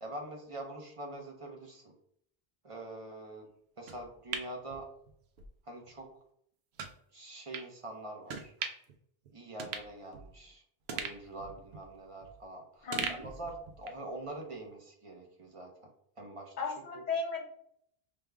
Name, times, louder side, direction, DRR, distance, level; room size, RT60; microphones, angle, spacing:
voice 1, 0.0-2.0 2.6-3.5 3.8-4.9 5.6-6.1 7.1-8.6 9.3-10.6 10.9-16.5 16.9-17.0, right 2 dB, 35° right, 1 dB, 0.7 m, -44 dB
sound 1, 3.9-5.5 5.9-6.0 6.8-7.0 7.5-7.7 8.3-9.0 9.3-9.4 9.6-10.5 10.9-12.5 12.9-14.1 14.4-14.5, right 6 dB, 90° right, 0.8 m, -41 dB
voice 2, 12.8-13.3 16.6-17.5, left 4 dB, 40° left, 0 dB, 0.9 m, -35 dB
5.2 x 2.2 x 3.3 m, 0.68 s
omnidirectional pair, 1.0 m